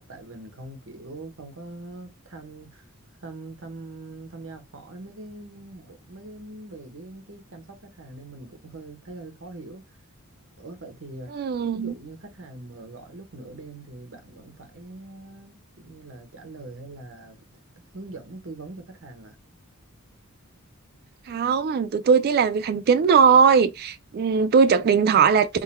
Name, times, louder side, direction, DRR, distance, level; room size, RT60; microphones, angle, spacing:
voice 1, 0.0-2.9 3.2-10.0 10.6-11.4 11.7-17.4 17.9-19.4, right 2 dB, 60° right, 1.0 m, -42 dB
voice 2, 11.3-11.9 21.3-25.5, right 6 dB, 45° right, 0.3 m, -19 dB
3.7 x 2.2 x 4.1 m
head